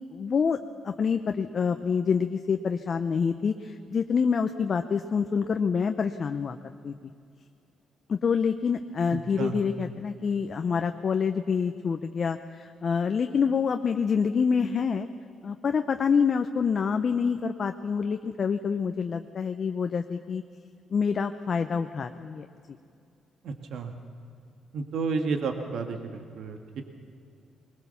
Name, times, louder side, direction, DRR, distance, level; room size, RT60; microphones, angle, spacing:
voice 1, 0.1-0.6 0.8-6.6 6.8-6.9 8.1-15.1 15.4-20.4 20.9-22.5, left 6 dB, 45° left, 7 dB, 0.7 m, -27 dB
voice 2, 23.5-23.9 24.7-26.8, right 4 dB, 70° right, 5 dB, 1.8 m, -31 dB
21.0 x 20.5 x 7.0 m, 2.4 s
cardioid pair, 90°, 0 cm